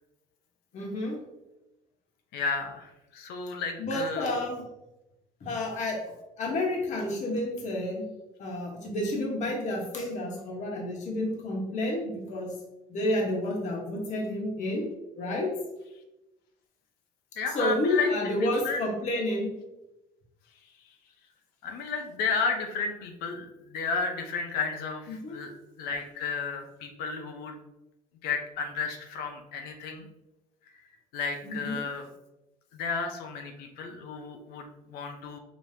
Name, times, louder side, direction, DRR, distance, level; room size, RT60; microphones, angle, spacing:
voice 1, 0.7-1.2 3.8-4.6 5.4-6.0 6.4-8.0 8.4-12.5 12.9-14.8 15.2-15.5 17.5-19.5 25.1-25.3 31.4-31.8, left 1 dB, 50° left, -1 dB, 1.3 m, -30 dB
voice 2, 2.3-4.3 17.4-18.1 18.4-18.8 21.6-27.5 28.2-30.1 31.1-32.1 32.7-35.4, left 5 dB, 75° left, 4 dB, 0.7 m, -33 dB
5.0 x 3.0 x 2.7 m, 0.95 s
cardioid pair, 115°, 16 cm